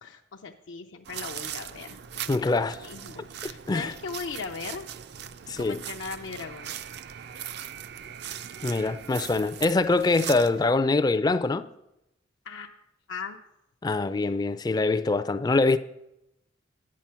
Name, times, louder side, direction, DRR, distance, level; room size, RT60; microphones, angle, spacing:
voice 1, 0.0-2.0 2.3-4.9 5.6-6.7 12.4-12.7 13.1-13.4, left 5 dB, 80° left, 0.5 m, -38 dB
sound 1, 1.1-10.7, right 9 dB, 55° right, 0.4 m, -40 dB
voice 2, 2.3-2.9 3.7-3.9 5.5-5.8 8.6-11.6 13.8-15.8, left 3 dB, 20° left, 0.3 m, -24 dB
9.3 x 7.5 x 5.6 m
head